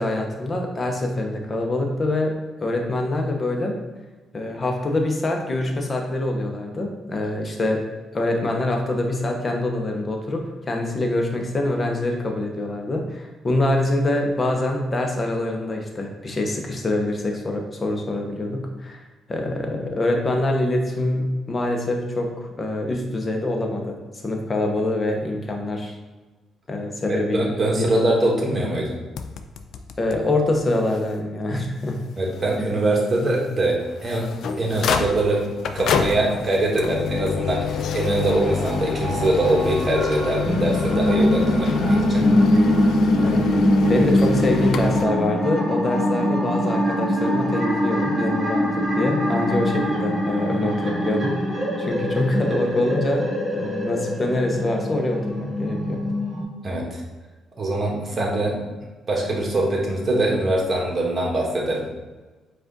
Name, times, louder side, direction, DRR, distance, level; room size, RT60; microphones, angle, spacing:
voice 1, 0.0-3.8 4.3-7.8 8.1-19.0 19.3-26.0 26.7-27.9 30.0-32.0 36.2-36.3 43.2-43.5 43.9-51.4 51.8-56.0, left 2 dB, 30° left, 2 dB, 0.8 m, -25 dB
voice 2, 27.1-29.0 32.2-34.3 34.6-35.4 35.7-42.3 56.6-57.0 57.6-58.6 59.1-61.8, right 1 dB, 35° right, -2 dB, 1.2 m, -23 dB
sound 1, 29.2-30.2 30.6-30.7 30.9-31.0 31.6-31.7 33.8-45.1, left 6 dB, 70° left, 0.3 m, -27 dB
sound 2, 38.0-56.4, equal, 15° right, 1.4 m, -23 dB
4.8 x 2.5 x 3.8 m, 1.2 s
cardioid pair, 90°, 0 cm